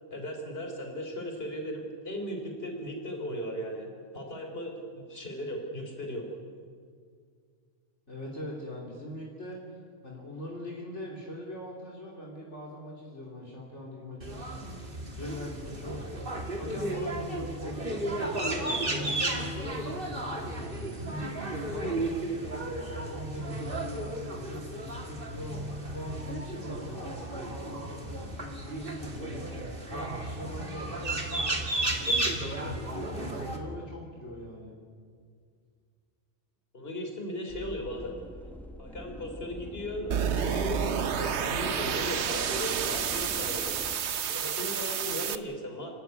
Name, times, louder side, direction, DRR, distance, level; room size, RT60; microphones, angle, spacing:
voice 1, 0.1-3.9 4.1-6.3 36.7-38.1 38.8-40.9 41.2-43.8 44.3-45.9, equal, 50° left, 2 dB, 3.9 m, -37 dB
voice 2, 8.1-34.8, left 1 dB, 65° left, -2 dB, 3.5 m, -42 dB
sound 1, 14.2-33.6, right 1 dB, 45° right, 2.8 m, -34 dB
sound 2, 37.5-44.0, equal, ahead, 1.5 m, -44 dB
sound 3, 40.1-45.4, right 7 dB, 65° right, 1.1 m, -30 dB
29.5 x 13.0 x 9.6 m, 2.1 s
omnidirectional pair, 1.3 m